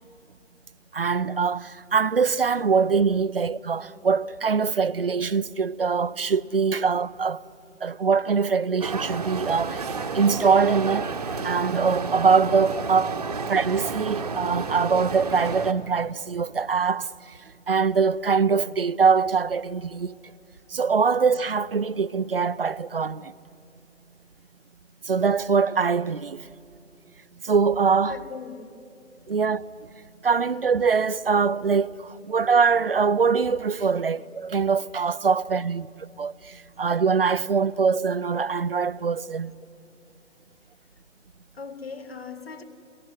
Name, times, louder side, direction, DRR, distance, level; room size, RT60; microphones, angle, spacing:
voice 1, 0.9-7.4 7.8-11.1 11.4-13.2 13.5-17.1 17.7-20.2 20.7-23.3 25.1-26.4 27.4-28.1 29.3-29.7 30.2-35.9 36.2-39.5, right 5 dB, 50° right, 0.5 m, -23 dB
sound 1, 8.8-15.7, right 4 dB, 30° right, 1.0 m, -31 dB
voice 2, 28.1-28.8 39.6-39.7 41.5-42.6, left 5 dB, 50° left, 2.0 m, -40 dB
21.0 x 21.0 x 9.8 m
figure-of-eight pair, 145°, 38 cm